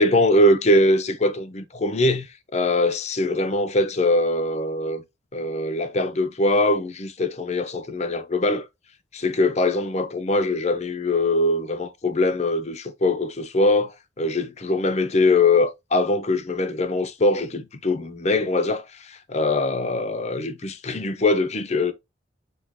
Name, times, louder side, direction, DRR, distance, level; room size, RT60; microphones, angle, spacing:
voice 1, 0.0-2.3 2.5-5.0 5.3-8.7 9.1-21.9, left 2 dB, 35° left, 0.6 m, -22 dB
6.2 x 2.4 x 3.4 m
head